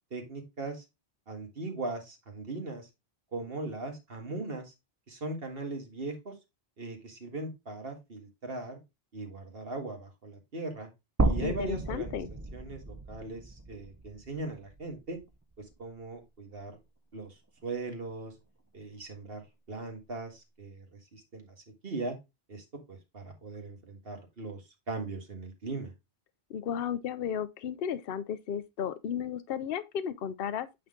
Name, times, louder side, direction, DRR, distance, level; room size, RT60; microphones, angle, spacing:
voice 1, 0.1-0.8 1.3-2.9 3.3-4.7 5.1-6.3 6.8-8.8 9.1-10.9 11.2-12.2 12.5-15.2 15.6-16.7 17.1-17.3 17.6-18.3 18.7-21.6 21.8-22.2 22.5-25.9, right 3 dB, 65° right, 1.9 m, -39 dB
sound 1, 11.2-15.3 15.7-15.8 17.2-17.3, right 2 dB, 20° right, 0.5 m, -33 dB
voice 2, 11.4-12.3 26.5-30.7, left 8 dB, 65° left, 0.8 m, -34 dB
8.6 x 3.9 x 3.6 m
omnidirectional pair, 1.0 m